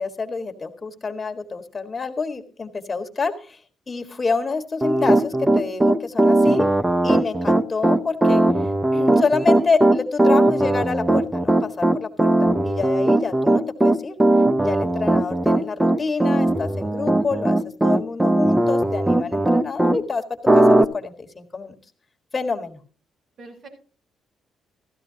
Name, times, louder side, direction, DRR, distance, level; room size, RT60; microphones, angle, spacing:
voice 1, 0.0-6.7 7.0-14.2 14.6-20.2 20.5-21.7 22.3-22.8, left 4 dB, 25° left, 4 dB, 1.7 m, -27 dB
Piano, 4.8-20.0 20.5-20.8, right 1 dB, 10° right, 0.7 m, -18 dB
voice 2, 7.0-7.4 23.4-23.7, right 4 dB, 60° right, 0 dB, 7.4 m, -44 dB
15.5 x 14.0 x 2.8 m, 0.39 s
cardioid pair, 90°, 0 cm